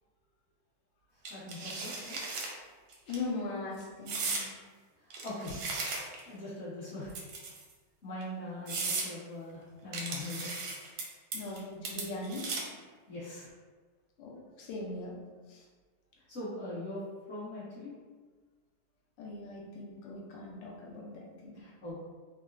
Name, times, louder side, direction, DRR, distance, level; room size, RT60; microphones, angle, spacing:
voice 1, 1.3-2.2 5.0-5.6 6.3-7.1 8.0-10.5 13.1-13.5 16.3-17.0 17.3-17.9 21.5-22.0, left 2 dB, 45° left, -10 dB, 1.0 m, -41 dB
sound 1, 1.3-2.5 2.9-3.2 4.1-4.5 5.1-6.3 7.1-7.7 8.2-8.3 8.7-9.1 9.9-11.0 11.3-11.6 11.9-12.8, right 3 dB, 85° right, 1.4 m, -36 dB
voice 2, 3.1-4.5 11.3-12.5 14.2-15.2 15.5-15.6 19.2-21.6, left 2 dB, 75° left, -2 dB, 1.3 m, -40 dB
3.7 x 2.1 x 2.5 m, 1.4 s
omnidirectional pair, 2.2 m